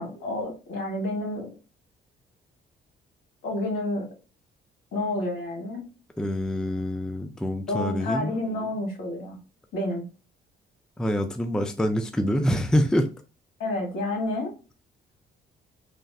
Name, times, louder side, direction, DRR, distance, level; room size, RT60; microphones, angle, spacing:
voice 1, 0.0-1.5 3.4-4.1 4.9-5.8 7.7-9.4 9.7-10.1 13.6-14.5, left 1 dB, 75° left, 1.6 m, -29 dB
voice 2, 6.2-8.3 11.0-13.1, equal, 5° left, 0.4 m, -25 dB
3.3 x 2.6 x 2.3 m
cardioid pair, 90°, 20 cm